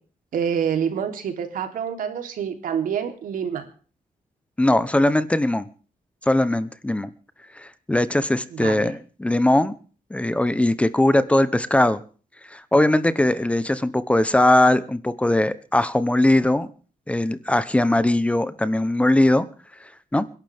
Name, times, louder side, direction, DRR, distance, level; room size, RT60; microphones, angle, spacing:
voice 1, 0.3-3.7 8.5-8.9, right 8 dB, 85° right, 3.5 m, -27 dB
voice 2, 4.6-5.7 6.3-7.1 7.5-9.7 10.1-12.0 12.5-16.7 17.1-19.4 19.8-20.2, left 1 dB, 10° left, 0.9 m, -20 dB
29.5 x 12.0 x 3.6 m
wide cardioid pair, 165°, 14 cm